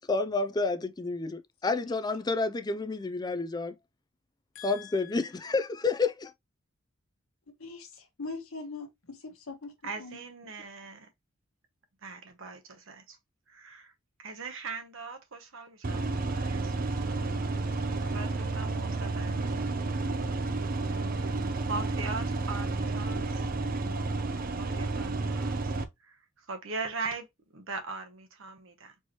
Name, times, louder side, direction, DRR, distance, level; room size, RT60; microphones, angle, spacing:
voice 1, 0.1-3.7 4.6-6.3, left 3 dB, 20° left, 0.4 m, -30 dB
voice 2, 4.5-5.3 7.6-10.2, left 4 dB, 75° left, 1.1 m, -42 dB
voice 3, 9.8-11.1 12.0-13.2 13.5-13.9 14.2-16.9 18.0-19.7 20.9-23.5 24.6-25.7 26.0-27.3 27.5-28.9, right 4 dB, 65° right, 1.0 m, -40 dB
sound 1, 15.8-25.8, right 3 dB, 40° right, 0.5 m, -31 dB
4.5 x 3.0 x 2.9 m
head